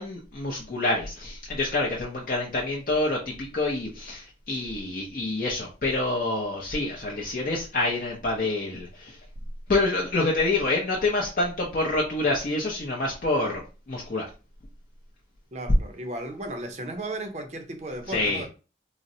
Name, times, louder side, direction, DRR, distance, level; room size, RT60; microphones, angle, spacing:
voice 1, 0.0-9.2 9.7-13.6 13.9-14.2 18.1-18.4, left 2 dB, 50° left, 0.6 m, -27 dB
voice 2, 15.5-18.5, right 1 dB, 40° right, 0.5 m, -35 dB
3.9 x 2.0 x 2.6 m
head